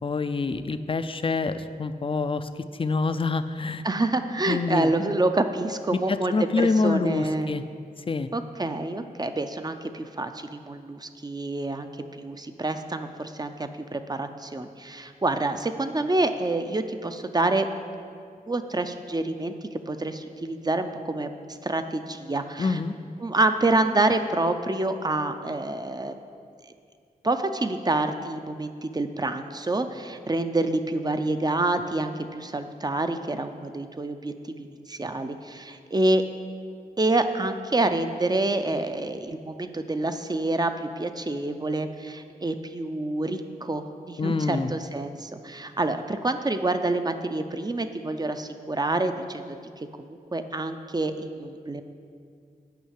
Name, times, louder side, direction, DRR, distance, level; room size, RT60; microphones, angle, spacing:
voice 1, 0.0-3.8 4.5-4.9 5.9-7.6 8.1-8.3 22.6-22.9 44.2-44.7, left 4 dB, 35° left, 11 dB, 0.4 m, -26 dB
voice 2, 3.8-7.5 8.3-17.7 18.5-19.5 19.9-22.8 23.2-26.2 27.2-36.2 37.0-49.4 49.8-49.9 50.3-51.8, right 2 dB, 25° right, 8 dB, 0.6 m, -27 dB
9.3 x 5.6 x 8.2 m, 2.3 s
wide cardioid pair, 100°, 16 cm